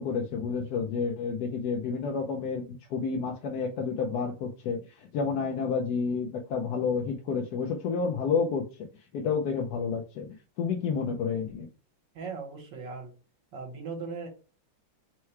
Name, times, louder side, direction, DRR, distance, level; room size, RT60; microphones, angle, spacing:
voice 1, 0.0-2.6 2.9-8.9 9.1-11.7, left 5 dB, 70° left, 1 dB, 1.1 m, -30 dB
voice 2, 12.1-13.1 13.5-14.3, right 4 dB, 70° right, 2 dB, 1.8 m, -38 dB
4.6 x 2.2 x 4.5 m, 0.34 s
omnidirectional pair, 2.1 m